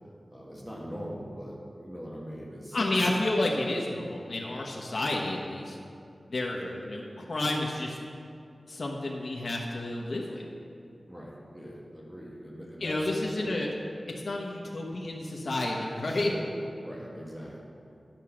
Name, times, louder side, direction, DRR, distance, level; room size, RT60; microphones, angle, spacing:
voice 1, 0.0-2.8 6.5-6.8 11.1-13.6 16.1-16.5 16.8-17.8, equal, 5° right, -4 dB, 1.6 m, -42 dB
voice 2, 2.7-5.8 6.3-6.6 6.9-8.0 8.7-10.4 12.8-13.7 14.2-16.3, left 2 dB, 65° left, -2 dB, 1.1 m, -30 dB
10.5 x 6.3 x 5.8 m, 2.6 s
wide cardioid pair, 90°, 0 cm